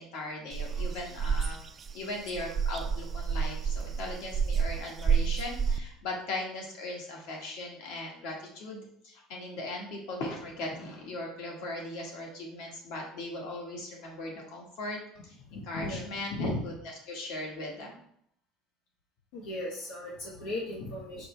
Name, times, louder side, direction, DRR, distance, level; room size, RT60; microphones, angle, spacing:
voice 1, 0.0-1.6 1.9-15.0 15.2-16.7 17.1-18.0, left 2 dB, 65° left, 0 dB, 1.7 m, -39 dB
sound 1, 0.5-5.8, right 6 dB, 20° right, 0.3 m, -29 dB
voice 2, 15.5-16.6 19.3-21.2, left 2 dB, 85° left, -3 dB, 1.3 m, -36 dB
5.8 x 5.4 x 3.3 m, 0.68 s
cardioid pair, 165°, 0 cm